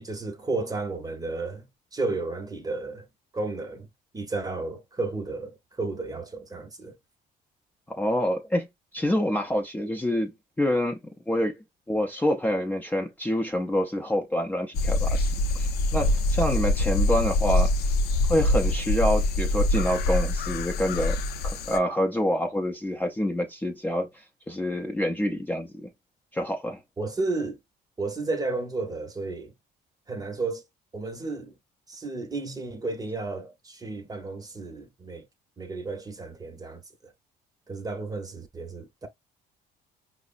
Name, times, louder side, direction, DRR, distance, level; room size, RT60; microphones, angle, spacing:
voice 1, 0.0-1.7 1.9-3.1 3.3-3.9 4.1-7.0 16.0-16.2 27.0-27.6 28.0-29.5 30.1-30.6 30.9-31.5 31.9-35.3 35.6-37.1 37.7-39.1, right 3 dB, 20° right, 0.9 m, -32 dB
voice 2, 7.9-8.7 8.9-10.3 10.6-11.0 11.3-11.5 11.9-15.3 15.5-17.7 18.3-21.2 21.4-24.1 24.5-25.9 26.3-26.8, left 1 dB, 10° left, 0.6 m, -27 dB
sound 1, 14.7-21.8, left 2 dB, 70° left, 0.5 m, -24 dB
4.7 x 2.0 x 2.4 m
cardioid pair, 110°, 17 cm